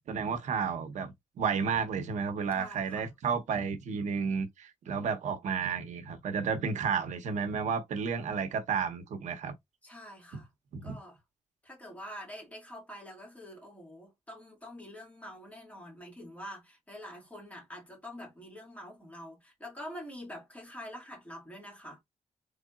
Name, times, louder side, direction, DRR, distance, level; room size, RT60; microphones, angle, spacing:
voice 1, 0.1-9.5 10.7-11.0, right 6 dB, 85° right, 0.8 m, -32 dB
voice 2, 2.5-3.1 9.8-10.5 10.8-11.2 11.6-22.0, equal, 10° left, 1.9 m, -46 dB
3.7 x 3.4 x 2.3 m
wide cardioid pair, 125°, 12 cm